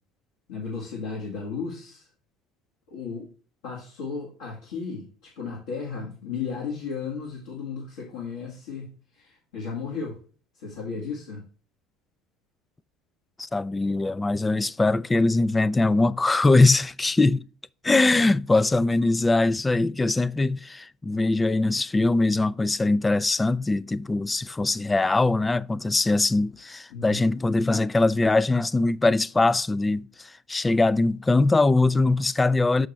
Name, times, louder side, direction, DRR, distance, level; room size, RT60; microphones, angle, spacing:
voice 1, 0.5-2.1 2.9-3.3 3.6-10.2 10.6-11.4 26.9-27.2, left 5 dB, 80° left, 1.9 m, -34 dB
voice 2, 13.4-17.5 17.8-32.9, left 2 dB, 15° left, 0.3 m, -22 dB
6.3 x 5.9 x 3.2 m
hypercardioid pair, 80°, 0 cm